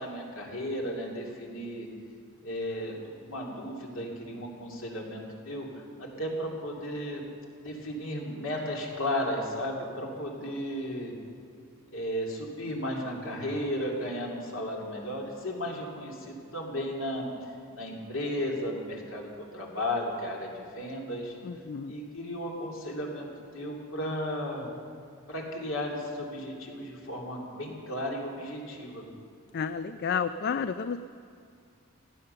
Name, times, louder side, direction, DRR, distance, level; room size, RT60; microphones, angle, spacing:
voice 1, 0.0-1.9 2.4-3.0 3.2-5.7 6.0-7.2 7.6-11.1 11.9-17.3 17.7-21.4 21.9-23.3 23.5-24.7 25.3-29.0, left 1 dB, 65° left, -1 dB, 2.7 m, -34 dB
voice 2, 21.4-21.9 29.5-31.0, left 6 dB, 50° left, 11 dB, 0.3 m, -31 dB
16.5 x 11.0 x 6.8 m, 2.2 s
head